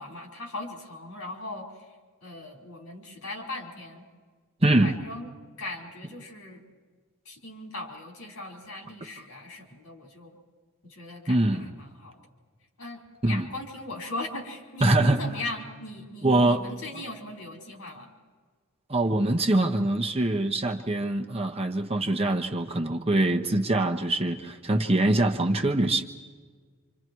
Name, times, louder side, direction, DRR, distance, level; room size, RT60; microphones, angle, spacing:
voice 1, 0.0-1.7 2.2-4.1 4.8-5.3 5.6-6.6 7.2-10.4 10.8-12.2 12.8-18.1, left 2 dB, 75° left, 1 dB, 4.9 m, -39 dB
voice 2, 4.6-4.9 11.3-11.7 13.2-13.5 14.8-15.2 16.2-16.6 18.9-26.0, right 2 dB, 25° right, 3 dB, 1.1 m, -23 dB
27.5 x 27.0 x 4.7 m, 1.5 s
head